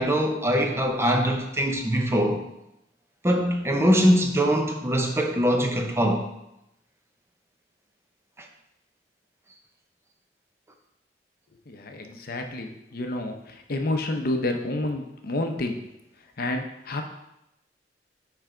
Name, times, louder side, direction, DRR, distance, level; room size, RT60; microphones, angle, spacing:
voice 1, 0.0-2.4 3.2-6.3, equal, 15° right, 3 dB, 0.6 m, -22 dB
voice 2, 11.7-13.4 13.7-15.8 16.4-17.0, left 2 dB, 55° left, 4 dB, 0.7 m, -29 dB
9.3 x 3.4 x 3.8 m, 0.85 s
head